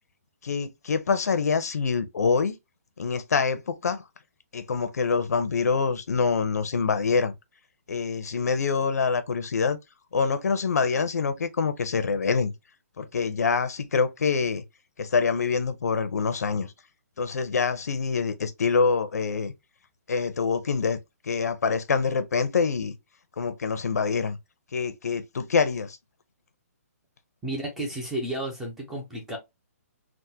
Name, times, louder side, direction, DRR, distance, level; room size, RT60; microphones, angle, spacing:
voice 1, 0.4-2.6 3.0-4.0 4.5-7.3 7.9-9.8 10.1-12.5 13.0-14.6 15.0-16.7 17.2-19.5 20.1-21.0 21.2-22.9 23.4-24.4 24.7-26.0, left 5 dB, 90° left, 0.6 m, -25 dB
voice 2, 27.4-29.4, right 1 dB, 5° right, 0.4 m, -32 dB
3.5 x 2.1 x 2.7 m
hypercardioid pair, 175°, 8 cm